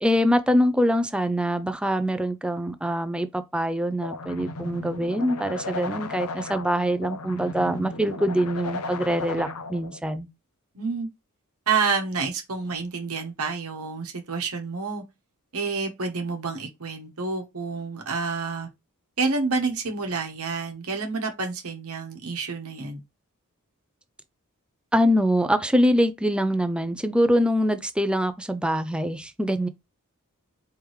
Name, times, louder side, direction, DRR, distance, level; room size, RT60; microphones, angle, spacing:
voice 1, 0.0-10.3 24.9-29.7, equal, 5° right, 0.5 m, -24 dB
sound 1, 4.0-10.0, left 3 dB, 75° left, 0.6 m, -35 dB
voice 2, 10.7-11.1 11.7-15.0 15.5-18.7 19.2-23.0, right 4 dB, 75° right, 1.1 m, -28 dB
4.7 x 3.5 x 3.2 m
head